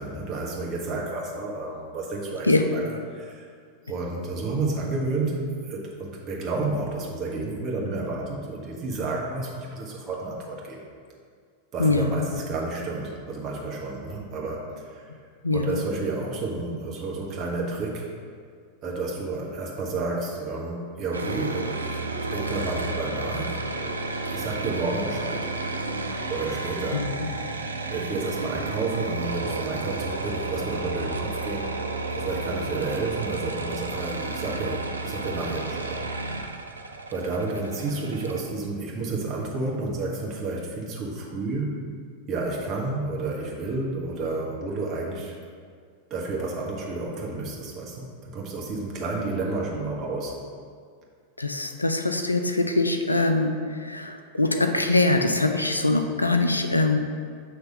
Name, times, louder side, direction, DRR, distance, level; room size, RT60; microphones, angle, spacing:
voice 1, 0.0-3.5 3.8-10.9 11.7-15.1 15.5-18.1 18.8-24.0 24.2-25.5 26.3-27.1 27.9-31.7 32.2-36.0 37.1-41.8 42.3-45.3 46.1-50.4, right 3 dB, 35° right, -2 dB, 1.3 m, -31 dB
voice 2, 11.8-12.3 15.4-15.8 26.9-27.3 51.4-57.0, left 2 dB, 85° left, 6 dB, 0.4 m, -23 dB
sound 1, 21.1-38.4, right 3 dB, 75° right, 0.4 m, -32 dB
6.6 x 3.3 x 5.5 m, 2.1 s
figure-of-eight pair, 90°, 0 cm